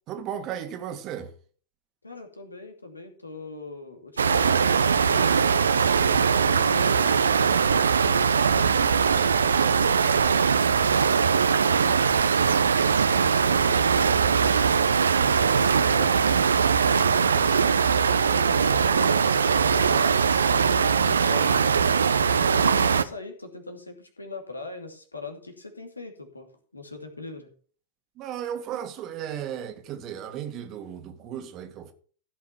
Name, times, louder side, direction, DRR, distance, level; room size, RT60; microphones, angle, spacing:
voice 1, 0.1-1.3 28.2-31.9, right 9 dB, 35° right, 1.9 m, -35 dB
voice 2, 2.0-5.4 5.9-7.6 8.0-10.5 10.9-12.0 12.8-16.3 16.8-17.5 18.3-19.2 19.5-22.1 22.4-27.5, left 3 dB, 80° left, 2.5 m, -40 dB
sound 1, 4.2-23.0, right 6 dB, 70° right, 0.7 m, -21 dB
15.5 x 5.7 x 5.9 m
figure-of-eight pair, 95°, 0 cm